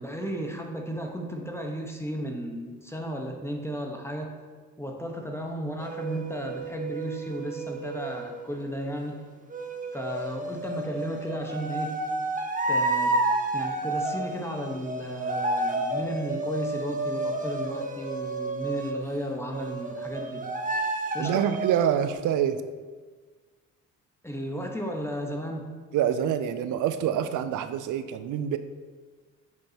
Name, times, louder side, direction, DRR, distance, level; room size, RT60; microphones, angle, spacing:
voice 1, 0.0-4.3 4.8-9.2 9.9-12.0 12.7-13.2 13.5-20.5 21.1-21.5 24.2-25.7, equal, 5° left, 1 dB, 1.2 m, -34 dB
sound 1, 5.8-8.5 9.5-19.0 19.5-22.1, right 2 dB, 20° right, 1.0 m, -31 dB
voice 2, 21.2-22.6 25.9-28.6, right 9 dB, 55° right, 11 dB, 0.5 m, -26 dB
9.1 x 5.3 x 2.9 m, 1.5 s
hypercardioid pair, 50°, 38 cm